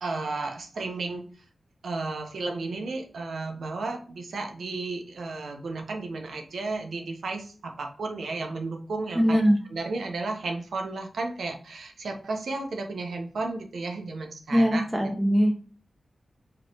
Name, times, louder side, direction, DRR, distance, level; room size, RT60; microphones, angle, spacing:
voice 1, 0.0-1.2 1.8-9.4 9.7-14.8, right 3 dB, 85° right, 4 dB, 1.2 m, -33 dB
voice 2, 9.1-9.6 14.5-15.5, equal, 10° right, 2 dB, 1.6 m, -21 dB
4.9 x 4.3 x 4.8 m, 0.41 s
wide cardioid pair, 115°, 0 cm